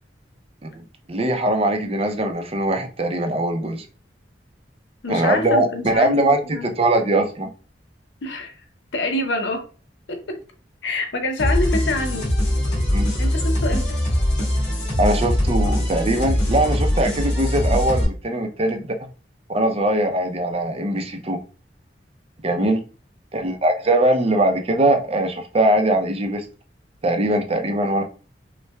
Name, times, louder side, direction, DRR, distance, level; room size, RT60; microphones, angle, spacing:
voice 1, 1.1-3.8 5.1-7.5 12.9-13.0 15.0-19.1 19.5-21.4 22.4-22.8 23.3-26.4 27.0-28.0, right 1 dB, 35° right, 0.5 m, -21 dB
voice 2, 5.0-6.7 8.2-8.5 8.9-9.6 10.1-10.4 10.8-12.3 13.2-13.9 22.6-22.8, left 2 dB, 80° left, 0.6 m, -26 dB
sound 1, 11.4-18.0, left 1 dB, 40° left, 1.9 m, -21 dB
5.4 x 2.2 x 2.2 m
head